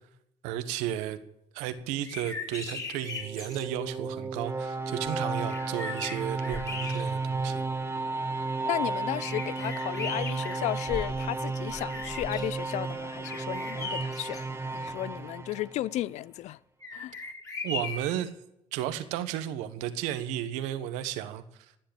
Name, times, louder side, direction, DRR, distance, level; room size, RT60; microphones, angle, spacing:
voice 1, 0.4-1.2 1.5-7.6 17.6-18.3 18.7-21.4, right 11 dB, 90° right, 1.2 m, -33 dB
sound 1, 1.9-3.7 5.0-5.1 5.5-7.4 8.0-8.1 9.2-11.3 11.7-12.5 13.3-14.4 16.8-18.2, left 3 dB, 25° left, 5.4 m, -38 dB
sound 2, 3.0-16.0, right 3 dB, 20° right, 1.9 m, -33 dB
voice 2, 8.6-16.6 16.9-17.1, left 14 dB, 75° left, 0.5 m, -34 dB
19.5 x 7.8 x 8.7 m
supercardioid pair, 65°, 12 cm